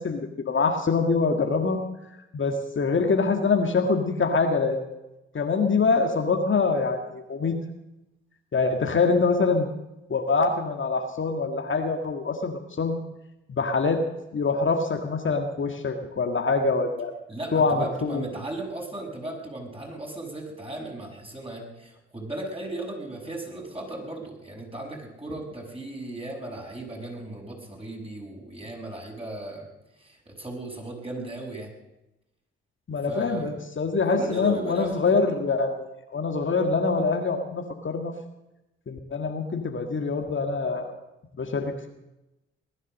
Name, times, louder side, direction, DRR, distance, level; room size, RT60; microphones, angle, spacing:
voice 1, 0.0-1.8 2.3-4.8 5.3-7.6 8.5-9.7 10.1-13.0 13.5-14.0 14.3-17.1 17.5-18.2 32.9-38.1 38.9-40.9 41.4-41.9, left 4 dB, 40° left, 4 dB, 1.8 m, -24 dB
voice 2, 17.3-29.7 30.0-31.7 33.1-33.5 34.1-35.0, right 2 dB, 20° right, 0 dB, 6.2 m, -36 dB
19.0 x 11.0 x 6.5 m, 0.96 s
hypercardioid pair, 45°, 29 cm